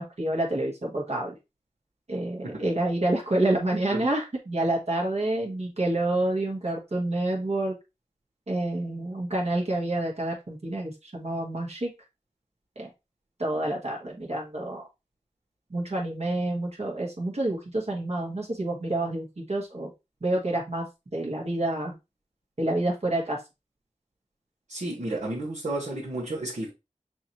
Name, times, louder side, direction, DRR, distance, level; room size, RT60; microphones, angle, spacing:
voice 1, 0.0-1.4 2.1-7.7 8.5-11.9 12.8-12.9 13.4-14.9 15.7-19.9 20.2-20.8 21.1-22.0 22.6-23.4, right 1 dB, 55° right, 1.6 m, -28 dB
voice 2, 24.7-26.7, right 1 dB, 75° right, 1.5 m, -32 dB
6.1 x 2.8 x 3.0 m
wide cardioid pair, 60°, 13 cm